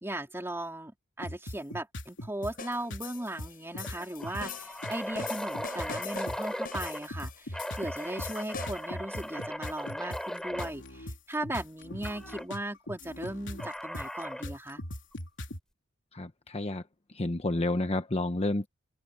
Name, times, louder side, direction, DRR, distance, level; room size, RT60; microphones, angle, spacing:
voice 1, 0.0-14.8, right 1 dB, 10° right, 3.9 m, -37 dB
sound 1, 1.2-2.5 2.9-3.0 3.4-4.5 4.8-15.6, left 1 dB, 65° left, 3.4 m, -40 dB
sound 2, 2.6-9.0, left 6 dB, 45° left, 7.2 m, -44 dB
sound 3, 2.6-2.9 3.2-3.3 3.8-7.1 7.5-10.7 12.0-12.5 13.6-14.5, equal, 5° left, 3.2 m, -38 dB
voice 2, 16.1-16.8 17.1-18.7, left 2 dB, 30° left, 1.0 m, -30 dB
open air
head